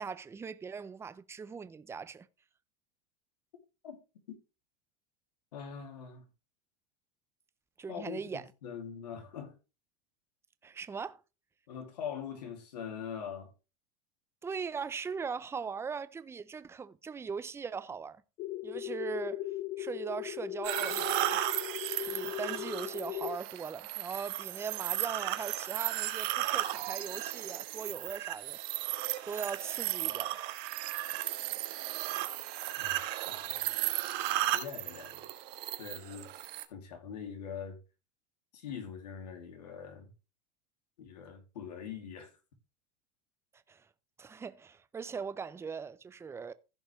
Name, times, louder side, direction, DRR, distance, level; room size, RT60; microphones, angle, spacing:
voice 1, 0.0-2.3 7.8-8.5 10.6-11.2 14.4-18.2 18.6-19.4 19.8-21.4 22.0-28.6 29.3-30.4 43.7-43.9 44.2-46.5, right 5 dB, 10° right, 0.6 m, -40 dB
voice 2, 5.5-6.2 7.9-9.5 11.7-13.5 32.8-33.6 34.5-35.3 35.8-36.3 36.7-37.8 38.5-40.1 41.0-42.3, left 7 dB, 90° left, 2.7 m, -43 dB
sound 1, 18.4-23.4, left 15 dB, 40° left, 0.4 m, -39 dB
sound 2, 20.6-36.6, right 15 dB, 55° right, 1.3 m, -35 dB
15.5 x 5.2 x 3.2 m
supercardioid pair, 120°, 20 cm